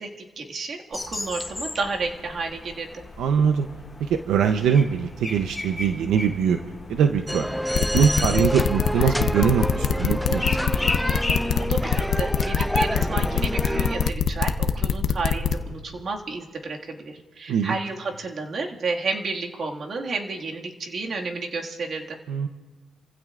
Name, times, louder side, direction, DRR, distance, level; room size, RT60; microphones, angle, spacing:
voice 1, 0.0-3.0 11.6-22.2, right 3 dB, 50° right, 1 dB, 2.0 m, -31 dB
Song Thrush, 0.9-11.7, left 2 dB, 20° left, 3.4 m, -36 dB
voice 2, 3.2-3.7 4.0-6.6 6.9-7.5 7.9-10.9 17.5-17.8 22.3-22.5, right 7 dB, 80° right, 7 dB, 0.7 m, -22 dB
sound 1, 7.3-14.1, equal, ahead, 0.4 m, -28 dB
sound 2, 7.7-15.5, left 8 dB, 65° left, 0.8 m, -23 dB
29.0 x 15.5 x 2.5 m, 1.3 s
cardioid pair, 90°, 0 cm